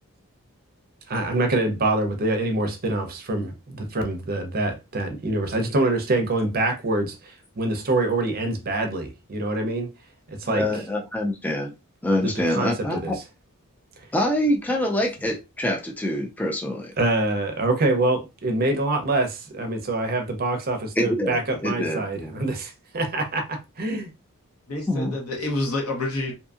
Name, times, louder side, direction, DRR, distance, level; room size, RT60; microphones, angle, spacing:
voice 1, 1.1-9.9 10.3-10.6 12.2-13.1 17.0-24.1, right 2 dB, 40° right, 0.6 m, -25 dB
voice 2, 10.4-11.7 12.0-13.2 14.1-16.9 21.0-22.4 24.9-25.2, left 1 dB, 5° left, 0.3 m, -25 dB
voice 3, 24.7-26.3, left 2 dB, 85° left, 1.1 m, -28 dB
2.7 x 2.6 x 2.4 m
head